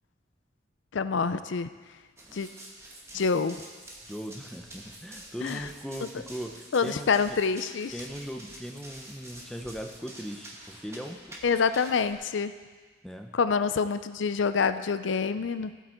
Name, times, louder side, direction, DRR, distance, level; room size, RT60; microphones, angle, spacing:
voice 1, 0.9-1.7 2.3-2.5 3.1-3.6 5.4-5.7 6.7-7.9 11.4-12.5 13.3-15.7, left 5 dB, 65° left, 12 dB, 0.5 m, -26 dB
Run, 2.2-12.1, right 1 dB, 15° right, 1.4 m, -47 dB
voice 2, 4.1-7.1 7.9-11.4 13.0-13.4, equal, ahead, 3 dB, 0.7 m, -39 dB
16.0 x 8.0 x 4.5 m, 1.4 s
head